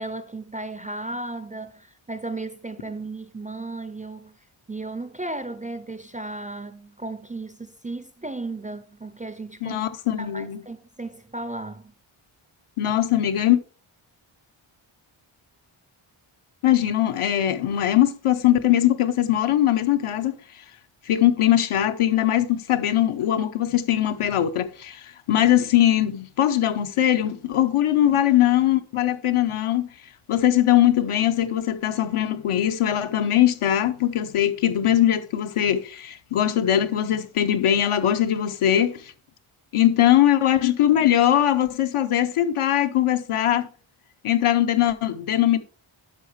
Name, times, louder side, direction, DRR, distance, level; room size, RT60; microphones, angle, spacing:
voice 1, 0.0-4.4 4.7-9.9 10.2-11.9 28.0-28.2, right 2 dB, 20° right, 0.3 m, -35 dB
voice 2, 9.6-10.6 12.8-13.6 16.6-20.3 21.1-29.9 30.3-39.1 39.7-43.7 44.2-45.6, left 12 dB, 85° left, 0.8 m, -21 dB
9.7 x 6.4 x 3.2 m
wide cardioid pair, 155°, 49 cm